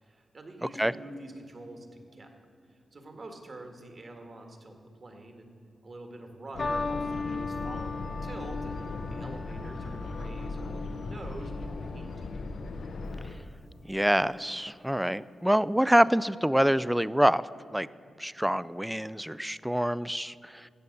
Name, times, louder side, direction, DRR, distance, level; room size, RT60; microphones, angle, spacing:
voice 1, 0.0-2.3 2.7-5.5 5.8-8.8 9.1-12.3, right 2 dB, 45° right, 4 dB, 1.7 m, -46 dB
sound 1, 6.5-13.4, left 3 dB, 75° left, 0.8 m, -38 dB
sound 2, 6.6-13.1 14.0-14.4, left 3 dB, 35° left, 0.9 m, -38 dB
voice 2, 13.9-17.9 18.2-20.7, equal, 5° right, 18 dB, 0.3 m, -26 dB
16.0 x 6.9 x 6.7 m, 2.5 s
cardioid pair, 80°, 0 cm